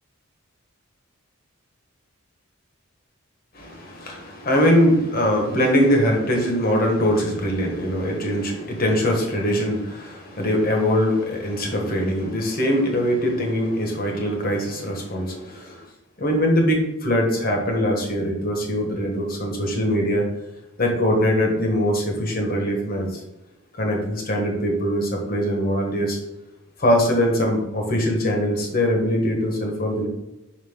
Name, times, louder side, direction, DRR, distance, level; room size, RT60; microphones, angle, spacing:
voice 1, 3.5-15.9 16.2-20.2 20.8-23.2 23.7-26.2 26.8-30.1, equal, 45° left, 1 dB, 1.3 m, -22 dB
5.3 x 5.2 x 3.7 m, 0.97 s
head